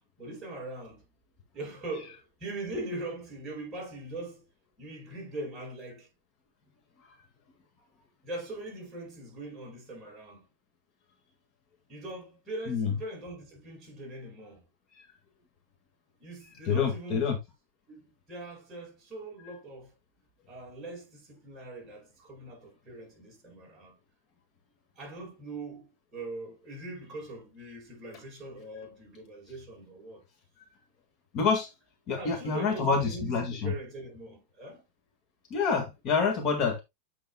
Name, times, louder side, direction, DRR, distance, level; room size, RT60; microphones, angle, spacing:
voice 1, 0.2-1.0 1.5-4.5 4.8-6.1 8.2-10.5 11.9-14.6 16.2-17.3 17.9-19.9 20.5-24.0 25.0-30.2 32.1-34.8, right 2 dB, 20° right, 4.4 m, -41 dB
voice 2, 16.7-17.4 31.3-31.7 32.1-33.7 35.5-36.8, left 5 dB, 40° left, 1.7 m, -27 dB
8.5 x 6.1 x 2.2 m
supercardioid pair, 150°, 0 cm